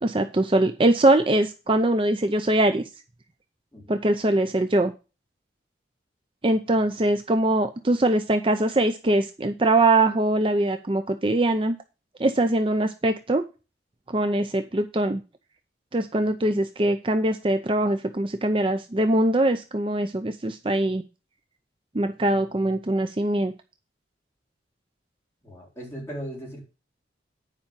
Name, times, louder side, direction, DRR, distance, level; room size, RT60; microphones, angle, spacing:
voice 1, 0.0-2.8 3.9-4.9 6.4-11.8 12.2-13.5 14.1-15.2 15.9-21.0 21.9-23.5, right 1 dB, 30° right, 7 dB, 0.6 m, -22 dB
voice 2, 25.4-26.6, right 1 dB, 15° left, -4 dB, 4.1 m, -37 dB
9.8 x 5.0 x 7.2 m, 0.31 s
head